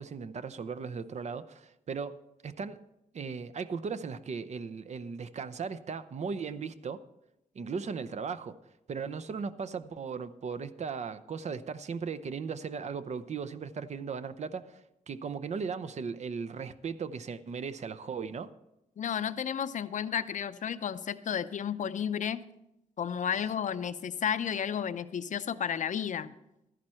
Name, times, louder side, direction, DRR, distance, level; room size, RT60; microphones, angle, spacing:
voice 1, 0.0-2.8 3.1-7.0 7.5-8.6 8.9-14.8 15.1-18.5 23.3-23.4, right 5 dB, 50° right, 13 dB, 0.6 m, -37 dB
voice 2, 19.0-22.4 23.0-26.3, left 8 dB, 60° left, 13 dB, 0.6 m, -32 dB
13.5 x 11.0 x 4.4 m, 0.89 s
cardioid pair, 100°, 15 cm